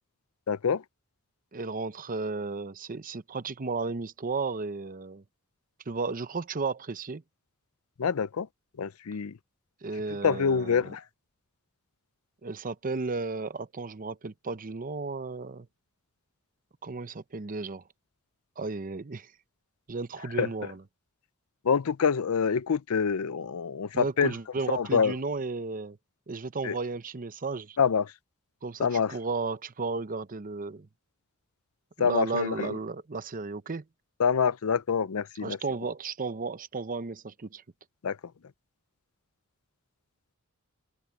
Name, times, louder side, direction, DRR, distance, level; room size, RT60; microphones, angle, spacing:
voice 1, 0.5-0.8 8.0-8.5 8.8-9.3 10.2-11.0 20.4-20.5 21.6-24.3 24.7-25.1 26.6-26.8 27.8-28.1 28.8-29.1 32.0-32.7 34.2-35.6 38.0-38.2, left 6 dB, 80° left, 0.5 m, -26 dB
voice 2, 1.5-5.2 5.9-7.2 9.8-10.9 12.4-15.7 16.8-17.8 18.6-19.3 19.9-20.8 23.9-26.0 26.3-27.8 28.6-30.9 32.0-33.8 35.4-37.6, right 4 dB, 40° right, 0.7 m, -34 dB
head